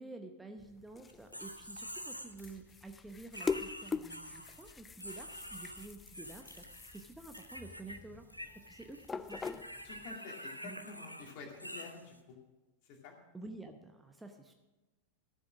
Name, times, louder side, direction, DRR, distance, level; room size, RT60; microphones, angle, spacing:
voice 1, 0.0-6.6 6.9-8.3 8.5-9.6 10.6-10.9 13.3-14.5, right 2 dB, 10° right, 5 dB, 0.8 m, -50 dB
sound 1, 0.6-10.2, left 5 dB, 15° left, 0.3 m, -44 dB
sound 2, 1.1-2.6 3.3-4.7 5.0-7.0 7.3-8.0 8.2-12.2, equal, 90° left, 0.7 m, -47 dB
voice 2, 9.8-12.4 12.8-13.1, left 4 dB, 45° left, 2 dB, 2.4 m, -49 dB
13.0 x 7.6 x 6.2 m, 1.1 s
figure-of-eight pair, 90°, 0 cm